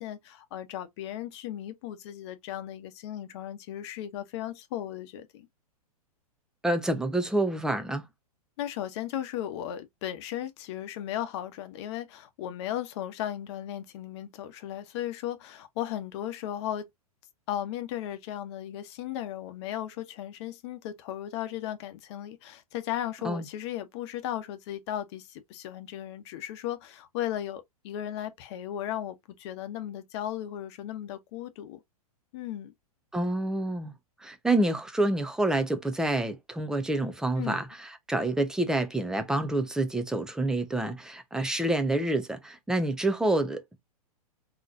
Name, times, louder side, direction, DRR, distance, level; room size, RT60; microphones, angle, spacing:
voice 1, 0.0-5.5 8.6-16.9 17.5-31.8 32.3-32.7 37.4-37.6, left 11 dB, 45° left, 0.9 m, -36 dB
voice 2, 6.6-8.0 23.2-23.4 33.1-33.9 34.2-43.8, right 2 dB, 5° right, 0.6 m, -28 dB
3.8 x 3.0 x 2.6 m
figure-of-eight pair, 110°, 19 cm